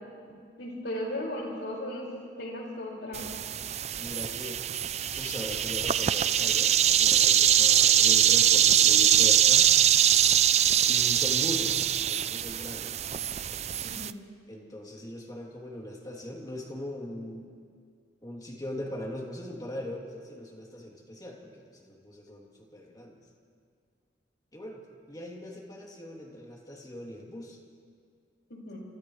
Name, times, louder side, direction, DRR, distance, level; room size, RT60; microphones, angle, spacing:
voice 1, 0.3-3.3 13.8-14.2 28.5-28.8, left 1 dB, 85° left, -2 dB, 5.2 m, -37 dB
sound 1, 3.1-14.1, right 10 dB, 40° right, 0.4 m, -23 dB
voice 2, 4.0-4.7 5.2-9.7 10.9-11.8 12.1-13.0 14.5-17.5 18.2-23.2 24.5-24.8 25.1-27.6, left 1 dB, 20° left, -1 dB, 2.9 m, -40 dB
30.0 x 27.5 x 3.2 m, 2.2 s
head